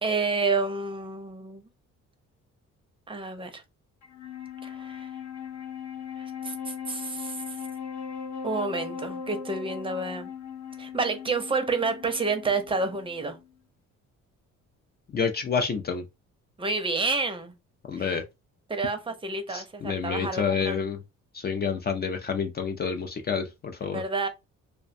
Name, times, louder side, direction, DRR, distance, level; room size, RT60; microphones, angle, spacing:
voice 1, 0.0-1.6 3.1-3.6 4.6-5.1 6.2-7.6 8.4-10.3 10.8-13.4 16.6-17.5 17.9-18.1 18.7-20.8 23.9-24.3, right 3 dB, 15° right, 0.5 m, -29 dB
Wind instrument woodwind instrument, 4.0-13.5, left 7 dB, 65° left, 0.9 m, -39 dB
voice 2, 15.1-16.0 17.9-18.2 19.5-21.0 21.3-24.0, left 6 dB, 35° left, 0.4 m, -28 dB
2.4 x 2.1 x 2.5 m
cardioid pair, 90°, 30 cm